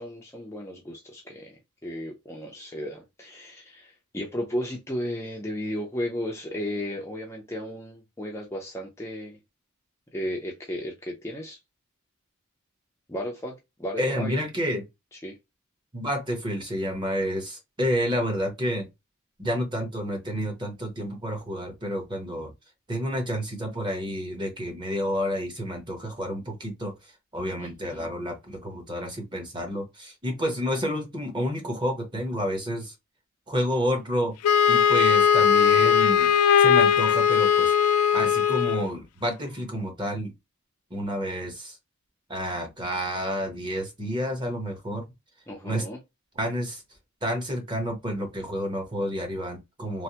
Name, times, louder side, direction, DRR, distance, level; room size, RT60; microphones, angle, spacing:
voice 1, 0.0-1.6 1.8-9.4 10.1-11.6 13.1-14.3 15.2-15.3 27.6-28.1 45.5-46.0, equal, 10° left, 0.5 m, -34 dB
voice 2, 14.0-14.8 15.9-18.9 19.4-22.5 22.9-26.9 27.3-32.9 33.5-34.3 34.7-36.3 36.6-37.7 38.1-40.3 40.9-41.8 42.3-45.1 45.6-45.8 46.3-46.8 47.2-50.0, equal, 20° right, 0.9 m, -29 dB
Wind instrument woodwind instrument, 34.4-38.9, left 8 dB, 80° left, 0.3 m, -19 dB
3.2 x 2.0 x 2.8 m
head